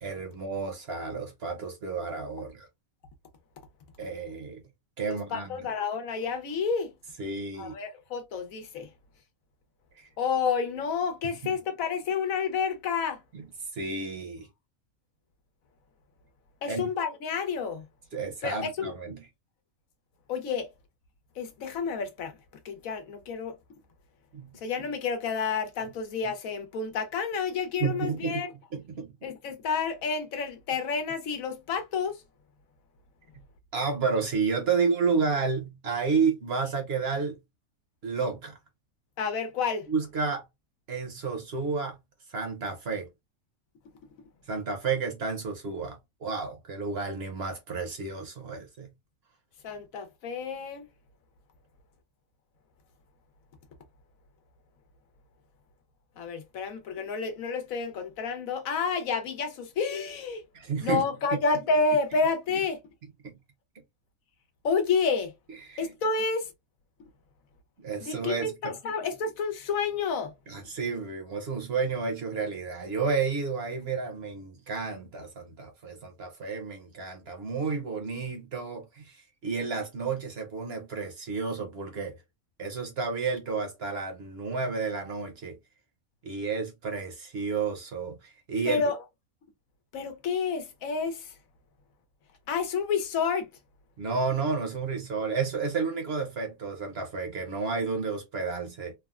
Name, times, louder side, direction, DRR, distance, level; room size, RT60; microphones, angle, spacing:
voice 1, 0.0-2.7 4.0-4.6 5.0-5.6 7.2-7.8 10.0-10.1 11.2-11.5 13.3-13.4 13.7-14.5 16.6-16.9 18.1-19.3 24.3-24.5 27.8-28.4 28.7-29.1 33.7-37.4 38.0-38.5 39.9-40.4 40.9-42.0 42.3-43.1 44.5-48.9 60.5-61.0 61.3-61.4 63.2-63.4 65.6-65.9 67.8-68.8 70.5-82.2 82.6-85.6 86.2-88.8 94.0-98.9, right 5 dB, 55° right, 0.9 m, -31 dB
voice 2, 5.1-6.9 7.6-8.9 10.2-13.2 16.6-17.9 18.4-18.9 20.3-20.7 21.4-22.3 22.6-23.6 24.5-28.5 29.2-32.2 39.2-39.9 49.6-50.9 56.2-60.4 60.8-62.8 64.6-65.3 65.8-66.5 68.0-70.3 88.7-89.0 89.9-91.3 92.5-93.5, left 5 dB, 75° left, 1.1 m, -29 dB
3.4 x 2.1 x 2.3 m
omnidirectional pair, 1.5 m